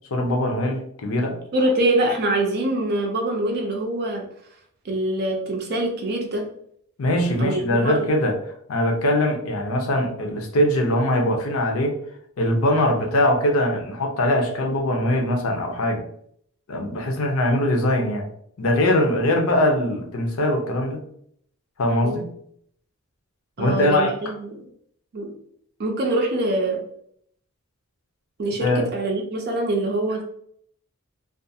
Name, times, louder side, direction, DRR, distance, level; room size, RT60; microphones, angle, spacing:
voice 1, 0.1-1.4 7.0-8.4 8.7-11.9 12.4-16.0 16.7-18.3 18.6-21.0 21.8-22.2 23.6-24.1 28.6-28.9, left 1 dB, 75° left, 2 dB, 0.6 m, -21 dB
voice 2, 1.5-4.3 4.9-6.4 7.4-8.1 22.0-22.2 23.6-24.6 25.1-25.3 25.8-26.8 28.4-30.2, right 1 dB, 50° right, 2 dB, 0.4 m, -24 dB
2.4 x 2.3 x 2.6 m, 0.67 s
head